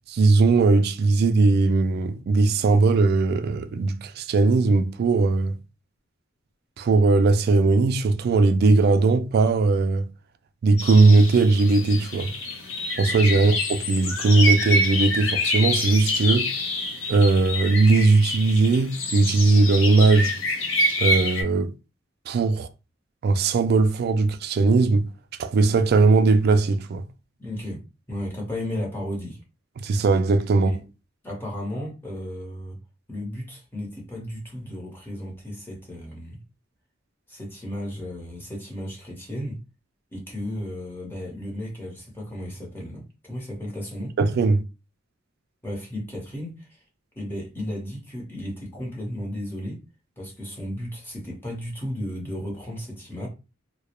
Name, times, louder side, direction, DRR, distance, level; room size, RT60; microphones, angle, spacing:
voice 1, 0.1-5.6 6.8-10.1 10.6-12.3 13.0-16.5 17.1-20.4 21.0-21.7 22.3-22.7 23.2-25.1 25.4-27.0 29.8-30.8 44.2-44.6, right 3 dB, 55° right, 0.3 m, -19 dB
sound 1, 10.8-21.4, left 1 dB, 75° left, 0.6 m, -27 dB
voice 2, 27.4-27.8 28.1-29.4 30.6-30.8 31.2-32.8 33.1-36.4 37.3-39.6 40.1-44.1 45.6-46.8 47.1-49.8 50.2-53.3, left 1 dB, 10° left, 0.8 m, -34 dB
2.3 x 2.0 x 2.9 m
head